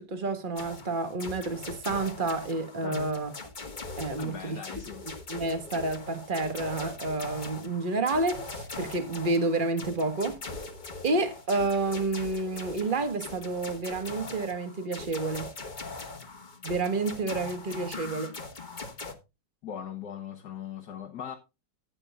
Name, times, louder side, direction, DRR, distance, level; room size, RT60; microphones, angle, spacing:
voice 1, 0.0-3.3 4.0-4.6 5.3-10.4 11.0-15.5 16.6-18.3, right 3 dB, 30° right, 1.7 m, -29 dB
sound 1, 0.6-19.1, left 3 dB, 30° left, 1.6 m, -41 dB
voice 2, 4.2-5.1 19.6-21.3, left 9 dB, 70° left, 1.9 m, -39 dB
15.0 x 9.1 x 2.4 m
omnidirectional pair, 1.8 m